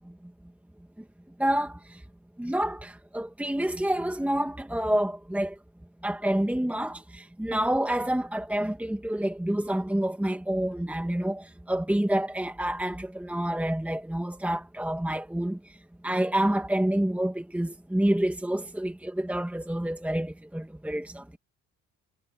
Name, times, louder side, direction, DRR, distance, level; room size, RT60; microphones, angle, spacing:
voice 1, 1.4-2.0 2.4-5.6 6.0-15.6 16.0-21.4, right 1 dB, 5° right, 1.9 m, -28 dB
cardioid pair, 90°, 30 cm